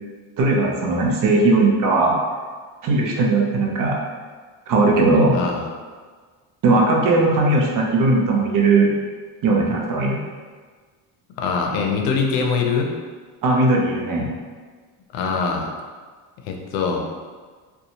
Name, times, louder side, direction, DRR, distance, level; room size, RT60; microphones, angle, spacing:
voice 1, 0.4-2.2 2.8-4.0 4.7-5.4 6.6-8.9 9.4-10.2 13.4-14.3, right 2 dB, 50° right, -1 dB, 0.6 m, -18 dB
voice 2, 5.3-5.6 11.4-12.9 15.1-15.7 16.4-17.0, left 5 dB, 90° left, 2 dB, 0.6 m, -23 dB
2.7 x 2.3 x 2.7 m, 1.5 s
cardioid pair, 110°, 42 cm